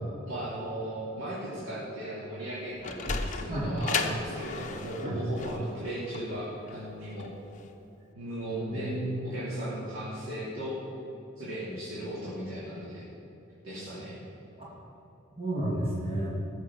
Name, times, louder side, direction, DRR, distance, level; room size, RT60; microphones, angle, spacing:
voice 1, 0.3-7.3 8.1-8.9 9.2-10.8 11.4-13.0 13.6-14.2, right 1 dB, 85° right, -9 dB, 3.1 m, -37 dB
Sliding door, 2.5-7.7, left 4 dB, 40° left, 0.8 m, -35 dB
voice 2, 8.7-9.4 14.6-14.7 15.4-16.3, right 1 dB, 30° right, -6 dB, 2.6 m, -32 dB
14.0 x 6.6 x 7.2 m, 2.9 s
head